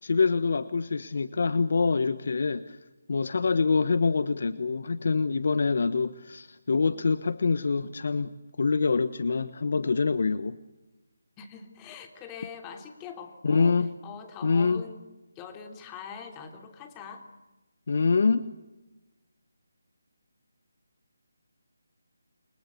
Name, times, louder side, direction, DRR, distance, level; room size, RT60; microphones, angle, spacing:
voice 1, 0.0-2.8 3.1-10.6 13.4-13.9 14.4-14.8 17.9-18.5, left 4 dB, 55° left, 14 dB, 1.2 m, -25 dB
voice 2, 11.4-13.8 14.0-15.0 15.3-17.3, left 6 dB, 15° left, 6 dB, 3.1 m, -43 dB
29.5 x 24.0 x 8.4 m, 1.1 s
figure-of-eight pair, 160°, 0 cm